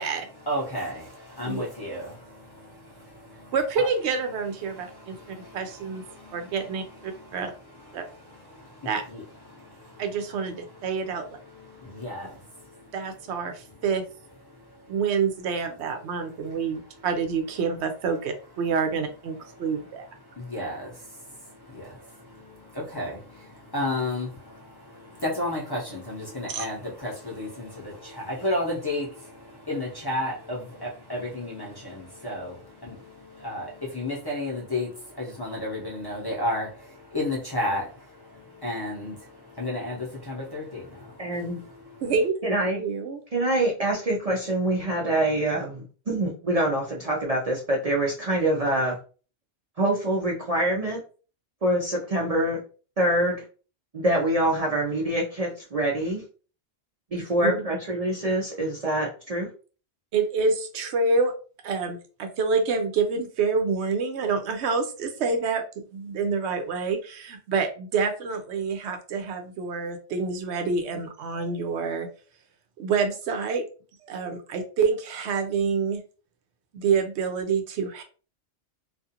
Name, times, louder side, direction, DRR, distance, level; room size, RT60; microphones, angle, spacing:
voice 1, 0.4-3.9 4.6-13.8 14.5-15.0 16.0-17.1 19.3-42.1, left 1 dB, 25° left, 0.6 m, -34 dB
voice 2, 3.5-6.0 6.3-7.5 7.9-8.0 8.9-9.0 10.0-11.4 12.9-14.0 14.9-20.0 26.5-26.7 42.0-42.3 42.8-43.2 57.4-57.6 60.1-61.3 61.6-65.6 65.9-72.1 72.8-73.6 74.0-76.0 76.7-78.0, right 5 dB, 80° right, 0.8 m, -27 dB
voice 3, 41.2-41.6 42.4-42.8 43.3-49.0 49.8-51.0 51.6-52.6 53.0-53.4 53.9-56.2 57.1-59.5, right 1 dB, 45° right, 0.5 m, -25 dB
2.4 x 2.4 x 2.7 m
omnidirectional pair, 1.1 m